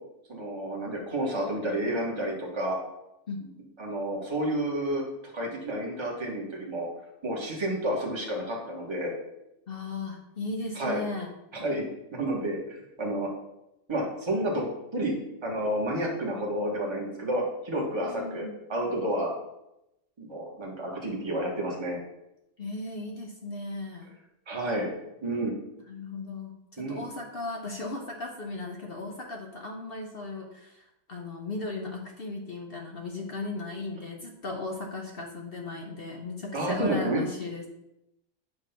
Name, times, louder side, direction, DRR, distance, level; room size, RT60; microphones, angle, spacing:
voice 1, 0.3-2.8 3.8-5.0 5.3-6.9 7.2-9.1 10.7-11.0 11.5-11.8 12.1-13.3 13.9-14.6 14.9-15.1 15.4-19.3 20.2-22.0 24.5-24.9 25.2-25.5 26.8-27.0 36.5-37.2, right 1 dB, 20° right, -1 dB, 1.3 m, -30 dB
voice 2, 9.7-11.3 18.0-18.6 22.6-24.1 25.9-37.7, left 3 dB, 50° left, 1 dB, 0.8 m, -36 dB
7.9 x 3.2 x 5.7 m, 0.88 s
omnidirectional pair, 1.6 m